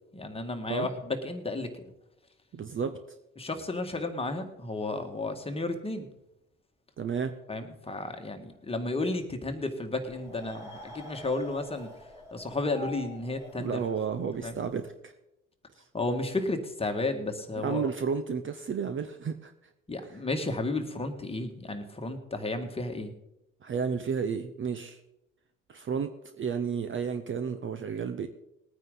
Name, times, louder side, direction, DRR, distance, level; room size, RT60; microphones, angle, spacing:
voice 1, 0.1-1.7 3.3-6.1 7.5-11.9 12.3-13.8 14.4-14.6 15.9-17.9 19.9-23.1, left 2 dB, 15° left, 5 dB, 1.8 m, -33 dB
voice 2, 2.5-3.0 7.0-7.3 13.6-15.1 15.7-15.8 17.6-19.5 20.0-20.2 23.6-25.0 25.7-28.3, right 6 dB, 30° right, 9 dB, 0.8 m, -32 dB
sound 1, 9.9-14.8, equal, 5° right, 4.9 m, -46 dB
20.0 x 9.3 x 3.9 m, 0.88 s
hypercardioid pair, 65°, 40 cm